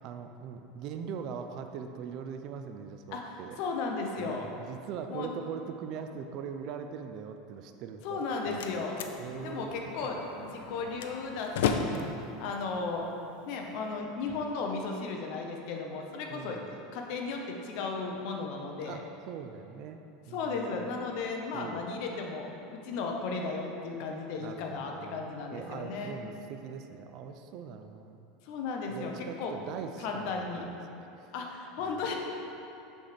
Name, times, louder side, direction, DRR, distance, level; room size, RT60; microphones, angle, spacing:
voice 1, 0.0-3.6 4.2-8.8 9.2-9.7 10.0-10.5 11.9-12.4 16.3-16.7 18.8-20.0 20.3-20.6 21.5-21.9 24.4-28.3 28.9-31.3 31.8-32.1, right 7 dB, 40° right, 7 dB, 0.3 m, -42 dB
voice 2, 3.1-4.4 5.1-5.3 8.0-9.0 9.4-12.0 12.4-13.1 13.5-16.6 16.9-19.0 20.3-26.1 28.4-29.1 29.4-29.5 30.0-30.6 31.3-32.1, left 4 dB, 50° left, 1 dB, 0.7 m, -35 dB
Slam, 8.0-14.0, left 6 dB, 85° left, 0.4 m, -36 dB
6.1 x 3.4 x 5.7 m, 2.9 s
supercardioid pair, 170°, 0 cm